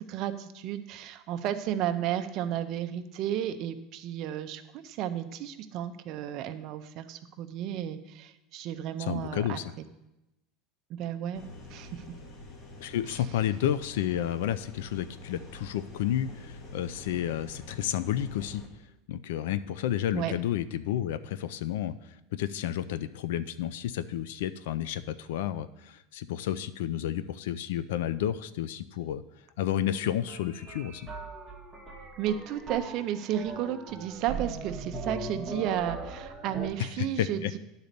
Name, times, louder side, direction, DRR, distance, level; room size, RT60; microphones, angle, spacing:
voice 1, 0.0-9.6 10.9-12.0 13.1-13.2 20.1-20.3 32.2-37.6, right 11 dB, 40° right, 8 dB, 0.5 m, -33 dB
voice 2, 9.0-9.7 12.8-18.6 19.1-29.2 29.6-31.1 36.8-37.5, left 11 dB, 85° left, 13 dB, 0.4 m, -31 dB
sound 1, 11.3-18.7, left 1 dB, 30° left, 1.0 m, -47 dB
sound 2, 30.3-36.7, right 3 dB, 5° right, 0.9 m, -39 dB
10.5 x 4.0 x 6.6 m, 0.91 s
supercardioid pair, 175°, 0 cm